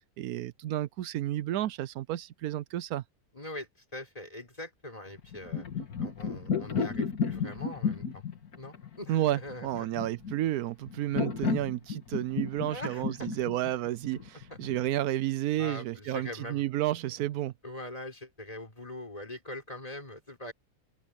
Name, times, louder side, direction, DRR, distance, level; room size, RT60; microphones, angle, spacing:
voice 1, 0.2-3.0 9.1-17.5, right 14 dB, 80° right, 1.1 m, -31 dB
voice 2, 3.3-5.6 6.0-8.2 8.6-9.9 12.7-13.3 15.6-16.6 17.6-20.5, left 1 dB, 25° left, 4.4 m, -42 dB
sound 1, 5.2-14.9, left 5 dB, 90° left, 2.4 m, -33 dB
open air
omnidirectional pair, 1.5 m